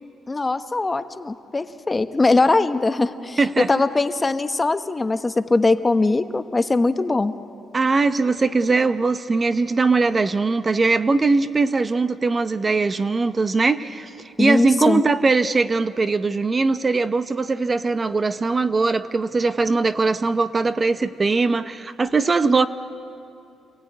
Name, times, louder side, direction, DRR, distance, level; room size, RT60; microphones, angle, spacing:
voice 1, 0.3-7.3 14.4-15.0, left 3 dB, 20° left, 10 dB, 0.9 m, -21 dB
voice 2, 3.4-3.7 7.7-22.7, right 3 dB, 30° right, 11 dB, 0.7 m, -20 dB
27.5 x 15.5 x 9.4 m, 2.6 s
cardioid pair, 90°, 0 cm